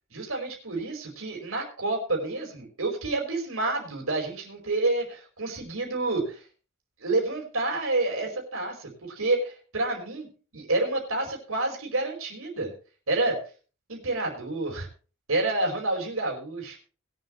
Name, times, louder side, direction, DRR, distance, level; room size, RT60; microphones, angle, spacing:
voice 1, 0.1-6.4 7.0-10.3 10.5-12.7 13.1-13.4 13.9-14.9 15.3-16.8, right 2 dB, 75° right, 0 dB, 5.0 m, -29 dB
22.0 x 7.8 x 3.2 m, 0.36 s
head